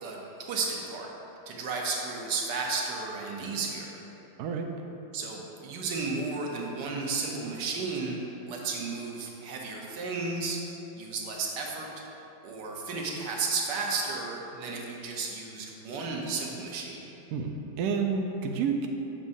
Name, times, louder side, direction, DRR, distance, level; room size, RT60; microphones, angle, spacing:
voice 1, 0.0-1.1 1.5-3.9 5.1-10.6 11.0-11.9 12.4-17.1, right 4 dB, 65° right, -1 dB, 1.4 m, -33 dB
voice 2, 4.4-4.7 17.3-17.5 17.8-18.9, right 6 dB, 85° right, 3 dB, 0.8 m, -29 dB
7.3 x 6.8 x 2.7 m, 3.0 s
omnidirectional pair, 2.2 m